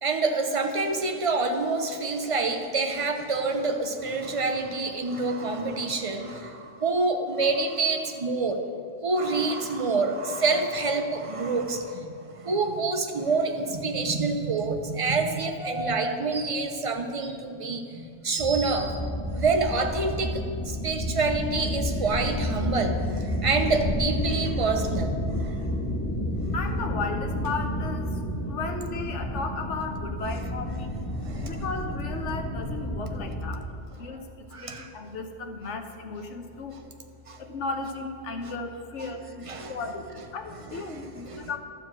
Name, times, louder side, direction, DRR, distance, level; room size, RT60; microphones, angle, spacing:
voice 1, 0.0-8.6 9.0-19.0 19.3-25.7 31.1-31.6 34.5-34.9 37.3-37.4 38.4-38.5 39.0-39.1 39.5-39.8 40.2-40.3 40.7-41.5, right 3 dB, 35° right, 5 dB, 0.7 m, -27 dB
sound 1, 18.4-33.5, left 1 dB, 10° left, 1.5 m, -30 dB
voice 2, 26.5-28.2 28.4-30.9 31.2-36.8 37.4-41.6, left 4 dB, 75° left, 5 dB, 1.2 m, -35 dB
sound 2, 27.4-31.7, right 6 dB, 85° right, 1.3 m, -43 dB
12.5 x 4.9 x 7.5 m, 2.5 s
omnidirectional pair, 1.2 m